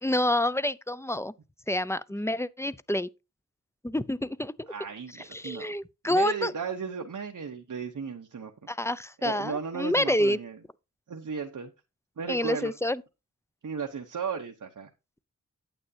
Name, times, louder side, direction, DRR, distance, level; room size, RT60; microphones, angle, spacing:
voice 1, 0.0-1.3 1.7-3.1 3.8-4.7 5.3-6.5 8.7-10.4 12.3-13.0, left 1 dB, 10° left, 0.5 m, -28 dB
voice 2, 4.7-5.7 6.0-8.5 9.2-10.6 11.1-11.7 12.2-12.7 13.6-14.9, right 6 dB, 75° right, 0.9 m, -35 dB
8.9 x 8.6 x 2.7 m
cardioid pair, 45°, 31 cm